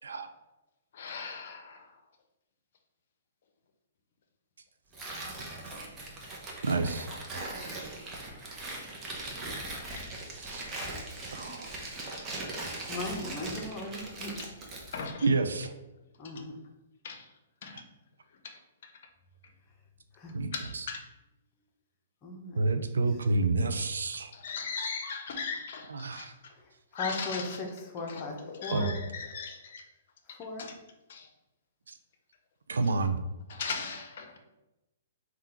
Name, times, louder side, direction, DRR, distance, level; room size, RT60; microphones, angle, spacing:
voice 1, 0.9-2.0 10.0-10.1 14.4-14.6 14.9-15.3 17.0-17.3 17.6-17.9 18.3-18.9 20.5-21.1 24.3-26.5 26.9-29.9 30.3-30.8 31.1-31.3 32.8-32.9 33.5-34.4, left 5 dB, 60° left, 5 dB, 0.6 m, -39 dB
Tearing, 4.9-15.1, right 2 dB, 20° right, 0.8 m, -40 dB
voice 2, 6.6-7.1 10.4-10.7 11.3-11.9 15.2-15.7 20.3-20.5 22.6-24.3 25.9-26.3 28.7-28.9 32.7-33.2, right 3 dB, 85° right, 8 dB, 0.4 m, -29 dB
voice 3, 12.9-14.3 16.2-16.5 20.1-20.4 22.2-22.6 26.9-27.4 27.9-28.4 28.6-29.0 30.4-30.7, left 3 dB, 30° left, 1 dB, 0.8 m, -37 dB
3.6 x 2.3 x 4.3 m, 0.98 s
hypercardioid pair, 130°, 0 cm